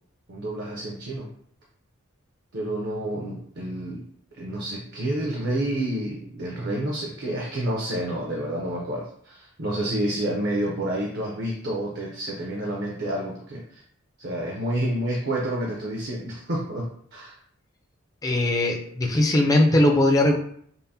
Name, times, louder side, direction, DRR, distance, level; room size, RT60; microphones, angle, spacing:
voice 1, 0.3-1.3 2.5-4.0 4.3-13.8 14.2-17.3, right 1 dB, 50° right, -2 dB, 0.6 m, -29 dB
voice 2, 18.2-20.4, left 1 dB, 15° left, 1 dB, 0.4 m, -20 dB
5.5 x 2.1 x 2.8 m, 0.64 s
head